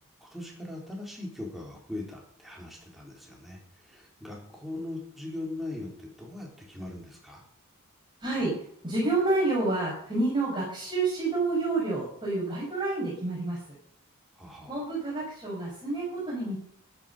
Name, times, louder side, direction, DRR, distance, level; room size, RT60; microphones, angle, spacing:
voice 1, 0.2-7.4 14.3-14.8, left 2 dB, ahead, -1 dB, 3.8 m, -40 dB
voice 2, 8.2-8.6 8.8-13.6 14.7-16.6, right 2 dB, 20° right, -6 dB, 5.2 m, -28 dB
12.5 x 11.0 x 6.7 m, 0.65 s
head